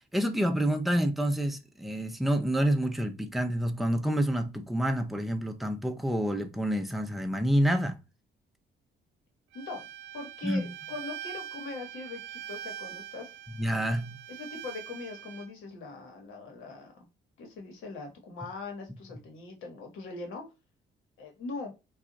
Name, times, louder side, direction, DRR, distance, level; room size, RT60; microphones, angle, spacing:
voice 1, 0.1-8.0 10.4-10.7 13.6-14.2, equal, ahead, 0.5 m, -28 dB
Bowed string instrument, 9.5-15.5, right 9 dB, 70° right, 0.5 m, -43 dB
voice 2, 10.1-13.4 14.3-16.9 17.4-20.4 21.2-21.7, left 3 dB, 85° left, 1.1 m, -41 dB
2.4 x 2.3 x 3.8 m
cardioid pair, 90°, 20 cm